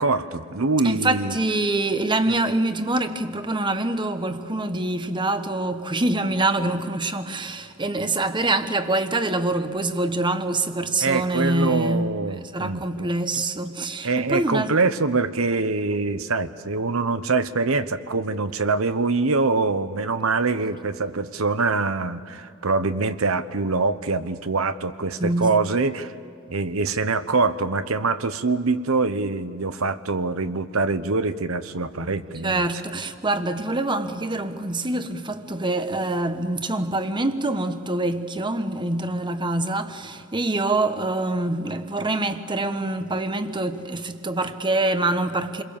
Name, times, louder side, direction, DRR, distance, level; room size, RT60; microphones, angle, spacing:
voice 1, 0.0-1.4 2.3-2.4 11.0-13.1 14.0-26.1 26.5-32.6, right 3 dB, 75° right, 1.0 m, -24 dB
voice 2, 0.8-12.1 12.5-14.7 25.2-25.6 32.4-45.6, right 2 dB, 20° right, 1.1 m, -25 dB
28.5 x 22.5 x 7.2 m
head